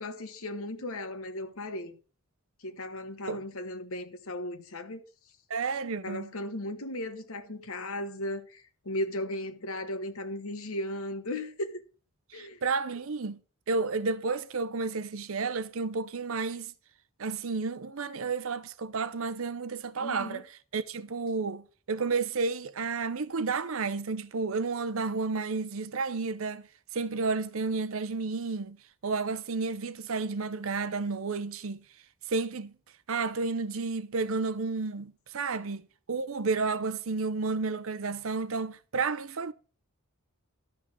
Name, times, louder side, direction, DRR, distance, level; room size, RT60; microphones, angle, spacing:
voice 1, 0.0-2.0 2.6-5.0 6.0-11.8 12.3-12.6 20.0-20.4, left 1 dB, 70° left, 1.3 m, -36 dB
voice 2, 5.5-6.3 12.3-13.4 13.7-16.7 17.2-20.5 20.7-26.7 26.9-28.8 29.0-31.8 32.3-32.7 33.1-39.5, right 4 dB, 65° right, 0.7 m, -31 dB
12.5 x 6.2 x 6.0 m
head